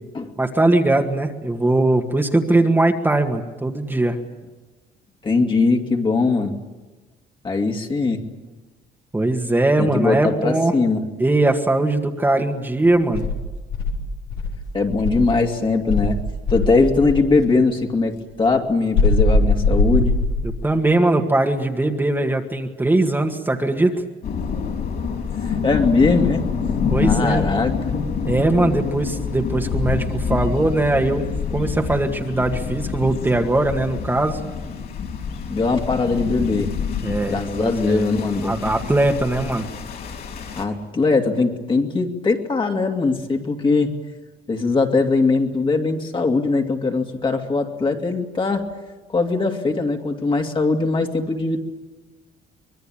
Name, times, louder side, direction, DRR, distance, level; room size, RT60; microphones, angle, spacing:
voice 1, 0.4-4.2 9.1-10.7 11.2-13.2 20.4-23.9 26.9-27.4 28.3-34.4 37.0-38.1 38.4-39.7, right 2 dB, 10° right, 2 dB, 1.9 m, -20 dB
voice 2, 5.2-6.5 7.4-8.2 9.8-11.0 14.7-16.2 16.5-20.1 25.4-26.5 27.0-27.8 35.5-36.7 37.3-38.5 40.6-44.0 44.5-48.7 49.1-51.6, left 3 dB, 30° left, 3 dB, 2.6 m, -20 dB
Insect, 13.1-15.4 15.9-17.3 18.9-20.6, left 3 dB, 80° left, 3.9 m, -20 dB
sound 1, 24.2-40.6, left 6 dB, 65° left, 5.0 m, -27 dB
25.0 x 21.0 x 9.0 m, 1.2 s
cardioid pair, 110°, 17 cm